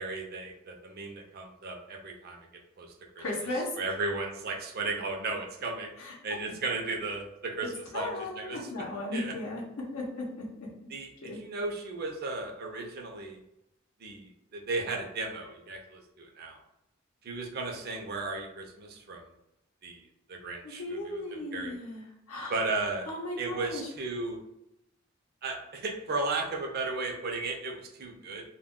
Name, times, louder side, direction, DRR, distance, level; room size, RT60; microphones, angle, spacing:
voice 1, 0.0-2.4 2.8-3.2 3.8-5.9 6.2-8.1 8.4-8.6 9.1-9.3 10.9-13.4 14.0-16.6 17.2-19.2 19.8-20.0 20.3-21.8 22.5-23.1 23.4-24.4 25.4-28.4, right 3 dB, 50° right, 1 dB, 0.5 m, -35 dB
voice 2, 3.2-3.7 6.0-6.1 7.9-9.6 9.9-10.7 11.2-11.4 20.6-22.5 23.1-23.9, left 1 dB, 80° left, -3 dB, 0.6 m, -36 dB
2.2 x 2.1 x 3.6 m, 0.85 s
head